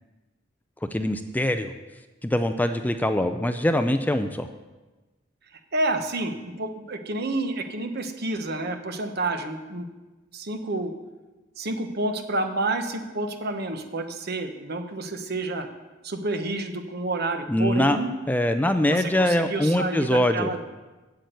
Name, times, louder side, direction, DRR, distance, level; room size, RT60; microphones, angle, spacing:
voice 1, 0.9-1.7 2.2-4.5 17.5-18.0 18.3-20.5, left 1 dB, 10° left, 8 dB, 0.4 m, -23 dB
voice 2, 5.7-9.9 10.3-10.9 11.6-15.7 16.0-18.1 18.9-20.6, right 2 dB, 55° right, 7 dB, 1.0 m, -29 dB
8.4 x 7.9 x 8.1 m, 1.2 s
head